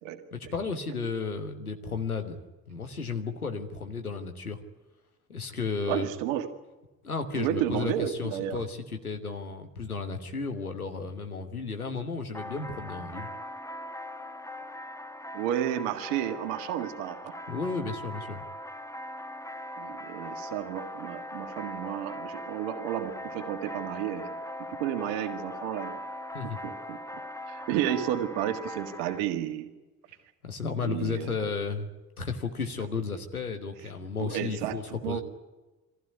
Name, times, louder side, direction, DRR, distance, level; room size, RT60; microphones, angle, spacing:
voice 1, 0.3-2.4 2.7-4.6 5.3-6.1 7.0-13.3 17.5-18.4 26.3-26.6 30.4-31.9 32.2-35.2, left 4 dB, 90° left, 6 dB, 1.4 m, -33 dB
voice 2, 5.9-6.5 7.3-8.6 15.3-17.4 19.8-24.4 24.7-26.0 26.6-27.0 27.5-29.7 30.8-31.5 34.2-34.8 35.0-35.2, right 11 dB, 65° right, 8 dB, 1.8 m, -32 dB
sound 1, 12.3-29.2, left 1 dB, 5° left, 1.4 m, -40 dB
23.5 x 15.0 x 9.5 m, 1.1 s
figure-of-eight pair, 45°, 42 cm